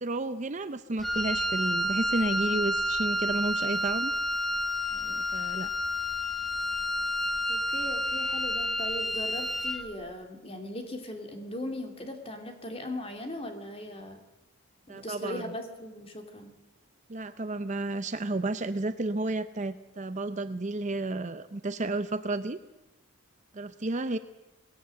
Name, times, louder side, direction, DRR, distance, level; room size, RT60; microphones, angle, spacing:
voice 1, 0.0-4.1 4.9-5.7 14.9-15.6 17.1-22.6 23.5-24.2, right 2 dB, 35° right, 11 dB, 0.6 m, -32 dB
Wind instrument woodwind instrument, 1.0-9.9, left 1 dB, ahead, 0.9 m, -30 dB
voice 2, 7.5-14.2 14.9-16.5, left 1 dB, 25° left, 4 dB, 2.7 m, -39 dB
20.5 x 17.0 x 7.7 m, 1.0 s
head